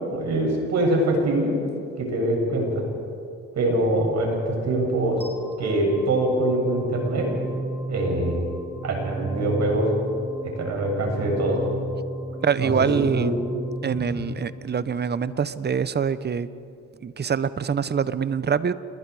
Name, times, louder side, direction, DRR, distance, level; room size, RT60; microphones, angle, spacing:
voice 1, 0.1-1.5 2.0-2.8 3.5-5.2 5.6-7.3 7.9-8.4 8.8-9.9 10.6-11.6 12.6-13.3 13.9-14.1, right 1 dB, 60° right, 0 dB, 7.7 m, -23 dB
sound 1, 5.2-16.1, right 2 dB, 5° right, 4.6 m, -35 dB
voice 2, 12.4-13.4 13.8-16.5 17.0-18.7, right 7 dB, 35° right, 15 dB, 0.9 m, -25 dB
29.0 x 21.5 x 4.9 m, 2.5 s
cardioid pair, 90°, 30 cm